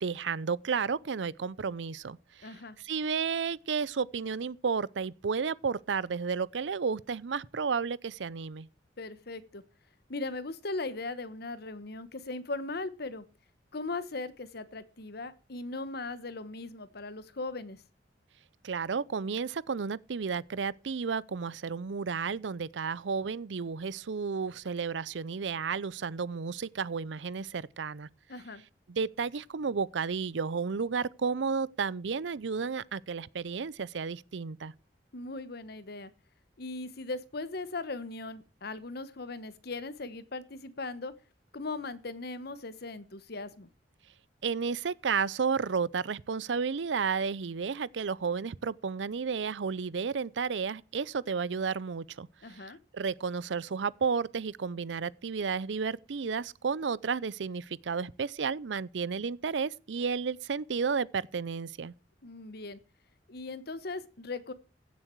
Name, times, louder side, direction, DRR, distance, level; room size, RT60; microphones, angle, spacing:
voice 1, 0.0-2.5 2.8-8.7 18.6-28.1 28.9-34.7 44.4-61.9, right 5 dB, 90° right, 0.5 m, -32 dB
voice 2, 2.4-2.8 9.0-9.6 10.1-13.2 13.7-17.8 28.3-28.6 35.1-36.1 36.6-41.1 41.5-43.7 52.4-52.8 62.2-62.8 63.3-64.5, left 3 dB, 60° left, 1.1 m, -38 dB
15.5 x 7.5 x 4.6 m
head